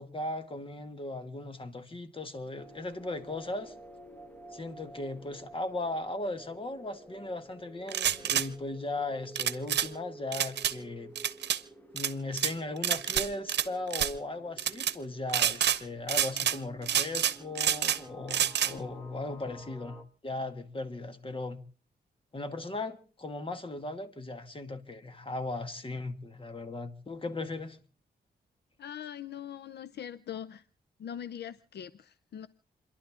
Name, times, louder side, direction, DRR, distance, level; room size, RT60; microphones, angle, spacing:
voice 1, 0.0-3.7 4.5-11.1 11.9-20.0 20.2-21.6 22.3-27.8, left 2 dB, 30° left, 2.1 m, -37 dB
sound 1, 2.6-20.0, right 1 dB, 10° left, 2.1 m, -51 dB
sound 2, 7.9-8.5 9.4-9.9 10.3-10.7 11.2-11.6 12.0-12.5 12.8-13.7 13.9-14.1 14.6-14.9 15.3-15.8 16.1-16.6 16.9-18.0 18.3-18.7, right 10 dB, 85° right, 0.8 m, -28 dB
voice 2, 28.8-30.6 31.0-32.5, left 9 dB, 75° left, 0.6 m, -42 dB
29.5 x 11.5 x 3.7 m
cardioid pair, 80°, 17 cm